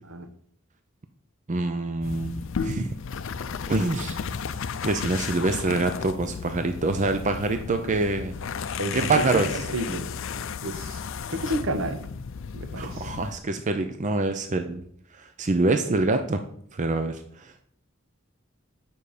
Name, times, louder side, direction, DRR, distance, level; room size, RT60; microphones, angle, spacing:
voice 1, 1.5-2.9 3.7-4.2 4.8-8.3 8.9-9.5 12.8-14.8 15.1-16.4 16.7-17.6, right 2 dB, 35° right, 0.5 m, -25 dB
sound 1, 2.0-13.4, left 6 dB, 65° left, 0.5 m, -34 dB
voice 2, 8.8-10.1 10.4-11.0 11.3-12.1 12.5-13.1, right 1 dB, 65° right, 0.9 m, -31 dB
9.1 x 5.4 x 4.9 m
head